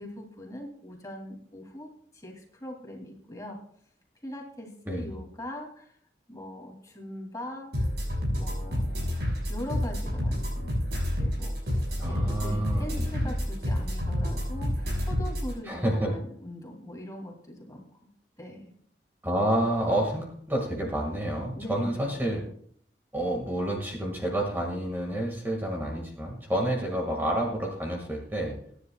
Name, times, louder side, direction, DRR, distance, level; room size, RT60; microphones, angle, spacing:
voice 1, 0.0-3.6 4.2-5.9 6.3-7.9 8.3-10.9 11.2-11.8 12.1-17.9 18.4-18.7 21.5-22.2, left 1 dB, 20° left, 1 dB, 2.5 m, -41 dB
sound 1, 7.7-15.5, equal, 70° right, 5.7 m, -29 dB
voice 2, 12.0-12.9 13.2-13.4 15.7-16.1 19.2-22.4 23.1-28.6, right 1 dB, 10° right, 0 dB, 1.8 m, -29 dB
22.5 x 10.0 x 2.3 m, 0.62 s
head